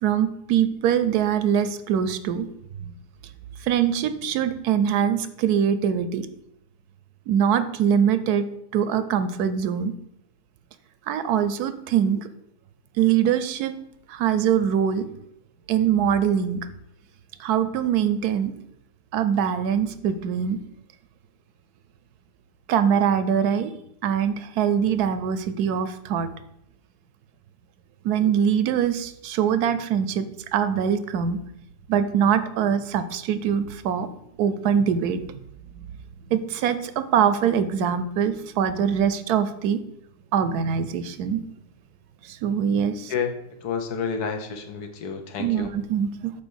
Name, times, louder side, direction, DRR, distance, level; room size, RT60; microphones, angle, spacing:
voice 1, 0.0-2.5 2.9-3.0 3.6-6.3 7.3-8.5 8.7-9.9 11.1-12.3 13.0-13.7 14.1-15.0 15.7-16.6 17.4-18.5 19.1-20.6 22.7-23.7 24.0-26.3 28.0-30.3 30.5-31.4 31.9-34.1 34.4-35.3 36.3-39.8 40.3-41.4 42.2-43.1 45.4-46.3, right 8 dB, 75° right, 12 dB, 1.1 m, -23 dB
voice 2, 43.6-45.7, left 6 dB, 75° left, 5 dB, 1.4 m, -29 dB
8.4 x 3.1 x 6.3 m, 0.77 s
omnidirectional pair, 1.7 m